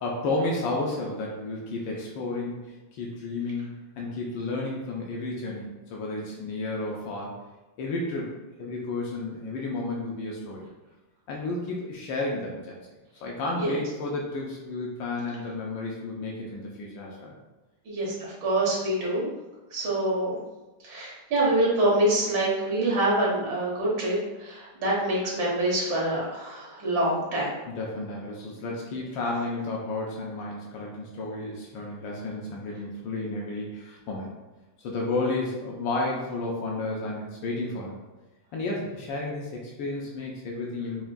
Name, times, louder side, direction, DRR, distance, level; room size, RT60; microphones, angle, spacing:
voice 1, 0.0-2.6 2.9-7.3 7.8-8.3 8.6-10.7 11.3-12.8 13.2-17.3 27.7-34.3 34.8-38.0 38.5-41.0, left 2 dB, 85° left, -2 dB, 1.4 m, -32 dB
voice 2, 17.9-19.3 19.7-20.4 20.8-27.5, right 1 dB, 80° right, -5 dB, 1.9 m, -26 dB
5.7 x 2.5 x 2.3 m, 1.1 s
omnidirectional pair, 2.0 m